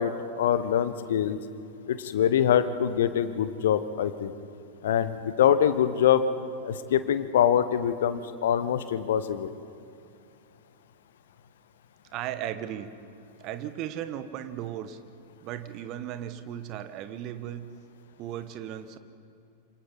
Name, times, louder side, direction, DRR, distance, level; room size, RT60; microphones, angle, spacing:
voice 1, 0.0-1.4 1.9-4.3 4.8-6.2 6.6-9.5, left 9 dB, 60° left, 13 dB, 1.1 m, -24 dB
voice 2, 12.1-12.9 13.4-15.0 15.4-17.7 18.2-19.0, right 11 dB, 40° right, 10 dB, 1.3 m, -36 dB
28.0 x 26.5 x 4.1 m, 2.6 s
figure-of-eight pair, 90°, 0 cm